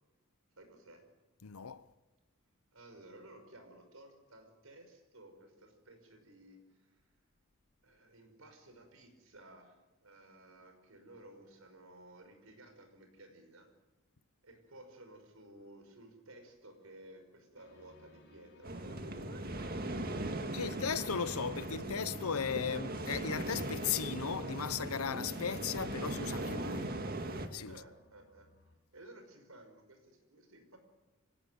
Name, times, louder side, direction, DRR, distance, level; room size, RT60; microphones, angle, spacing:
voice 1, 0.6-1.0 2.7-7.0 7.8-9.8 10.0-13.7 14.4-20.8 21.6-21.7 22.7-22.8 27.7-28.5 28.9-30.8, right 1 dB, 75° right, 5.6 m, -56 dB
voice 2, 1.4-1.9 20.5-27.0 27.5-27.8, left 7 dB, 85° left, 0.9 m, -36 dB
sound 1, 17.6-28.8, left 2 dB, 55° left, 4.8 m, -62 dB
sound 2, 18.6-27.5, right 1 dB, 45° right, 2.0 m, -39 dB
25.5 x 17.5 x 9.4 m
head